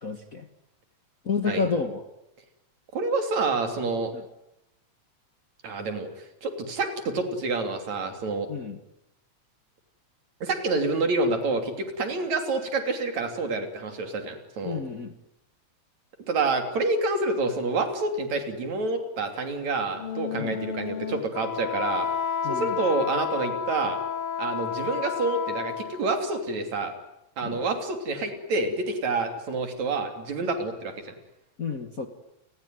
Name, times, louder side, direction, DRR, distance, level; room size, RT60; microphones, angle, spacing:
voice 1, 0.0-0.5 1.3-2.0 8.5-8.8 14.6-15.1 20.4-20.6 22.4-22.8 27.4-27.6 31.6-32.1, left 5 dB, 35° left, 7 dB, 1.6 m, -30 dB
voice 2, 2.9-4.1 5.6-6.1 6.4-8.5 10.4-14.8 16.3-22.1 22.4-24.0 24.4-26.9 27.4-31.1, right 3 dB, 70° right, 6 dB, 4.4 m, -28 dB
Wind instrument woodwind instrument, 19.9-26.2, left 7 dB, 60° left, 1.9 m, -31 dB
29.5 x 20.0 x 9.5 m, 0.86 s
omnidirectional pair, 3.3 m